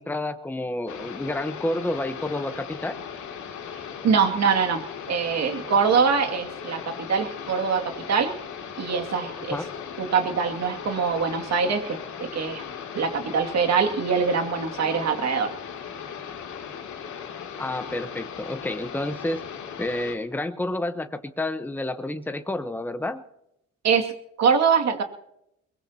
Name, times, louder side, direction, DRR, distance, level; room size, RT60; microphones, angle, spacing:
voice 1, 0.0-3.0 9.5-9.6 17.6-19.4 19.8-23.2, left 1 dB, 5° left, 9 dB, 1.0 m, -29 dB
sound 1, 0.9-20.1, left 7 dB, 75° left, 2.8 m, -38 dB
voice 2, 4.0-4.8 5.1-7.8 8.1-8.3 8.8-9.6 10.0-12.6 12.9-15.5 23.8-24.1 24.4-25.0, right 6 dB, 60° right, 4 dB, 2.4 m, -23 dB
22.0 x 20.5 x 2.9 m, 0.81 s
cardioid pair, 90°, 30 cm